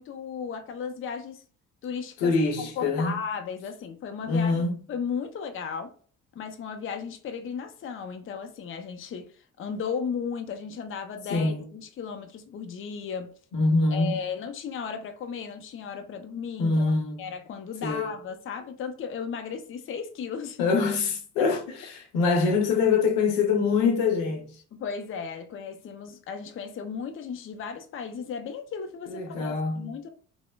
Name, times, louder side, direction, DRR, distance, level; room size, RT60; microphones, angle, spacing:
voice 1, 0.0-1.4 1.8-5.9 6.3-13.3 13.9-16.9 17.2-20.6 21.4-21.5 24.7-30.1, left 6 dB, 35° left, 0.5 m, -35 dB
voice 2, 2.2-3.1 4.2-4.8 11.3-11.6 13.5-14.2 16.6-17.2 17.8-18.1 20.6-24.6 29.1-29.9, left 4 dB, 90° left, 0.7 m, -24 dB
3.0 x 2.1 x 2.2 m
supercardioid pair, 65°, 35 cm